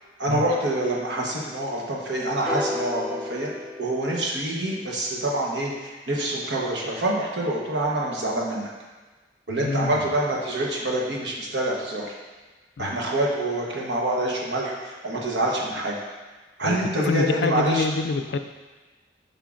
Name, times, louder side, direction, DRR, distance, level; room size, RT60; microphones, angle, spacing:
voice 1, 0.2-3.5 3.8-8.7 9.5-12.1 12.8-15.9 16.6-17.8, right 1 dB, 80° right, -2 dB, 1.1 m, -26 dB
sound 1, 2.5-4.8, left 1 dB, 5° right, 0.5 m, -33 dB
voice 2, 9.6-10.1 12.8-13.0 16.6-18.4, left 4 dB, 75° left, 8 dB, 0.4 m, -27 dB
7.0 x 5.5 x 2.5 m, 1.3 s
head